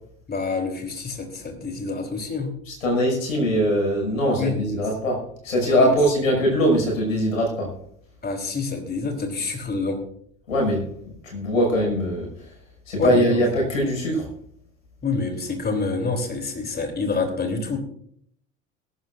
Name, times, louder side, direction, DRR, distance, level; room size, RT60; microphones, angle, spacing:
voice 1, 0.3-2.5 4.4-4.8 5.7-5.9 8.2-10.0 12.9-13.4 15.0-17.8, left 4 dB, 25° left, 5 dB, 3.4 m, -27 dB
voice 2, 2.7-7.7 10.5-10.8 11.2-12.3 12.9-14.3, equal, 80° left, 0 dB, 6.2 m, -22 dB
22.0 x 12.0 x 2.6 m, 0.66 s
figure-of-eight pair, 60°, 39 cm